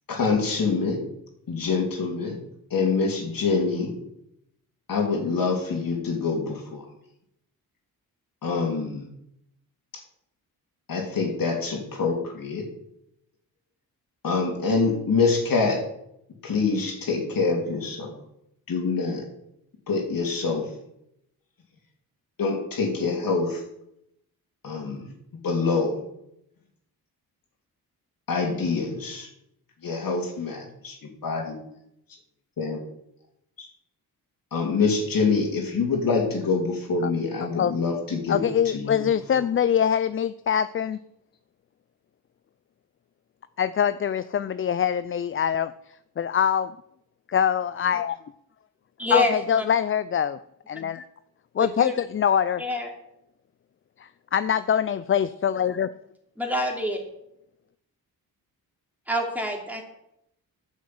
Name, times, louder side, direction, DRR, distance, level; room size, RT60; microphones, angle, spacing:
voice 1, 0.1-1.0 1.5-2.4 2.7-3.9 4.9-6.8 8.4-9.0 10.9-12.6 14.2-15.8 16.4-18.1 18.7-19.2 19.9-20.6 22.4-23.6 24.6-25.1 25.4-26.0 28.3-29.3 29.8-31.6 32.6-32.8 33.6-33.7 34.5-39.0 39.4-39.5, left 4 dB, 60° left, 1 dB, 3.3 m, -25 dB
voice 2, 38.3-41.0 43.6-45.7 46.2-46.8 47.3-48.2 49.1-50.4 50.7-51.1 51.6-52.6 54.0-55.9, left 8 dB, 35° left, 15 dB, 0.4 m, -24 dB
voice 3, 49.0-49.6 51.6-51.9 52.6-52.9 56.4-57.0 59.1-59.8, left 1 dB, 5° right, 1 dB, 3.0 m, -26 dB
9.6 x 7.3 x 7.8 m, 0.80 s
cardioid pair, 85°, 37 cm